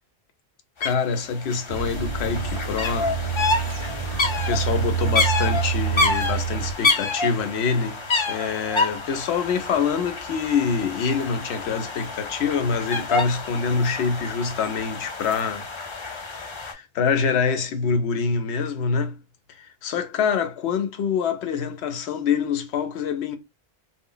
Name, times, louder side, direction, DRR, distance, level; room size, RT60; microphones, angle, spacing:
voice 1, 0.8-3.1 4.5-19.2 19.6-23.4, left 5 dB, 85° left, 0.9 m, -25 dB
sound 1, 0.8-0.9 1.2-16.7, left 3 dB, 45° left, 0.4 m, -28 dB
sound 2, 1.7-6.7, right 7 dB, 50° right, 0.4 m, -27 dB
2.1 x 2.0 x 3.7 m
omnidirectional pair, 1.1 m